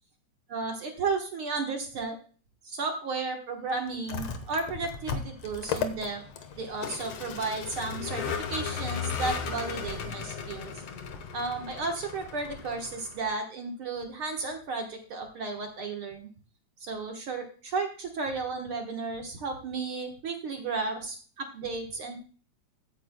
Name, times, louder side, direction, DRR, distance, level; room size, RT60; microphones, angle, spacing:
voice 1, 0.5-2.2 2.6-6.2 6.5-8.2 8.5-10.8 11.3-16.3 16.8-22.2, right 4 dB, 55° right, 3 dB, 1.7 m, -33 dB
Vehicle, 3.9-13.3, left 6 dB, 60° left, 1.9 m, -36 dB
15.5 x 9.1 x 2.2 m, 0.39 s
omnidirectional pair, 3.6 m